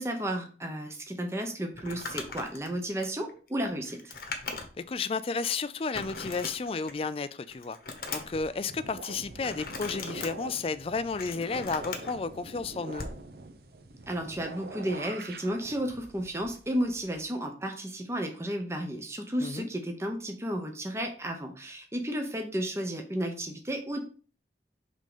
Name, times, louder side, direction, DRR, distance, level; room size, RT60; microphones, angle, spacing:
voice 1, 0.0-4.0 14.1-24.0, equal, 15° right, 0.9 m, -33 dB
Crumpling crinkling, 1.7-4.9 5.3-5.4 5.9-7.1 7.5-8.4 9.4-10.3 10.9-12.1 12.9-13.2, left 4 dB, 55° left, 1.2 m, -39 dB
voice 2, 4.8-7.8 8.1-13.1 19.4-19.7, left 4 dB, 35° left, 0.4 m, -32 dB
sound 1, 8.3-17.2, right 2 dB, 60° right, 0.7 m, -45 dB
5.5 x 3.8 x 5.0 m
head